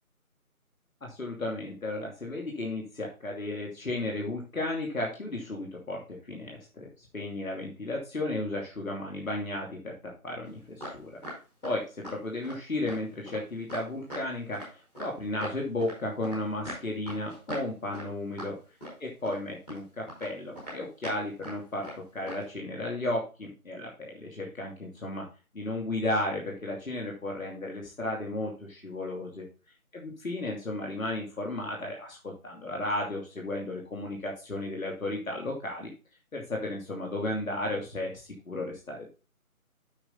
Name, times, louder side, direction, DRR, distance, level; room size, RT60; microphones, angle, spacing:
voice 1, 1.0-10.0 10.2-11.1 11.6-18.5 19.0-25.2 25.5-29.5 29.9-35.9 36.3-39.1, left 2 dB, 65° left, -1 dB, 2.9 m, -34 dB
sound 1, 10.4-10.9 11.2-11.8 12.0-12.2 12.4-12.6 12.9-14.2 14.5-15.1 15.4-16.4 16.6-17.7 17.9-18.1 18.4-18.5 18.8-19.4 19.7-19.8 20.1-20.3 20.6-21.1 21.4-21.6 21.8-22.0 22.3-22.4, equal, 5° left, 1.6 m, -40 dB
8.6 x 6.2 x 4.0 m, 0.32 s
figure-of-eight pair, 165°, 43 cm